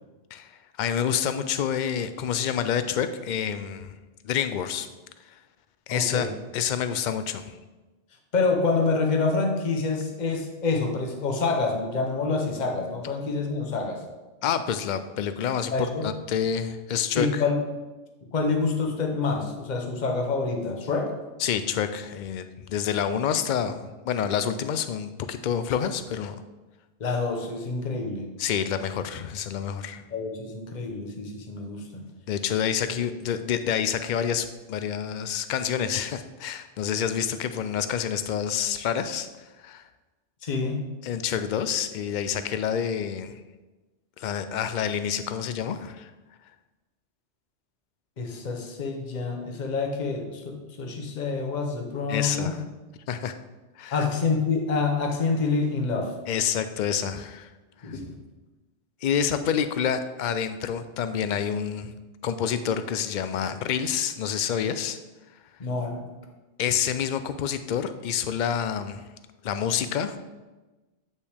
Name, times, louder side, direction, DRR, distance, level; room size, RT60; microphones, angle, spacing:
voice 1, 0.8-4.0 4.2-4.9 5.9-6.3 6.5-7.6 14.4-15.7 16.0-17.4 21.4-26.4 28.4-30.0 32.3-39.3 39.6-39.8 41.0-43.4 44.2-46.1 52.1-52.6 53.1-53.3 53.8-54.1 56.3-57.5 57.8-57.9 59.0-61.9 62.2-65.0 66.6-69.0 69.4-70.2, left 8 dB, 60° left, 10 dB, 0.5 m, -28 dB
voice 2, 5.9-6.3 8.3-14.0 15.7-16.1 17.1-17.6 18.3-21.1 27.0-28.3 30.1-32.1 40.4-40.9 48.2-52.5 53.9-56.1 57.8-58.1 65.6-66.1, left 4 dB, 40° left, 3 dB, 1.0 m, -27 dB
8.2 x 5.4 x 3.5 m, 1.1 s
omnidirectional pair, 1.2 m